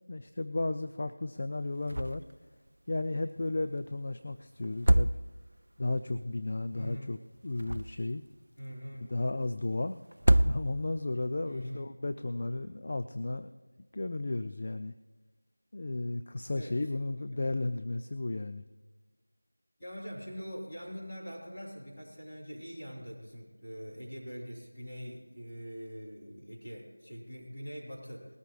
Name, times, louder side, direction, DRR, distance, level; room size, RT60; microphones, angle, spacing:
voice 1, 0.1-2.2 2.9-5.1 5.8-7.2 7.4-8.2 9.1-10.0 10.4-13.5 13.9-14.9 15.7-18.6, left 2 dB, 30° left, 10 dB, 0.3 m, -34 dB
sound 1, 1.9-2.4 2.7-2.8 4.6-5.7 7.4-8.3 10.1-11.1, right 1 dB, 65° right, 0.3 m, -26 dB
voice 2, 6.7-7.1 8.6-9.1 11.4-11.9 16.5-16.8 19.8-28.3, equal, 10° left, -12 dB, 3.6 m, -43 dB
19.5 x 13.0 x 3.2 m, 1.3 s
figure-of-eight pair, 175°, 0 cm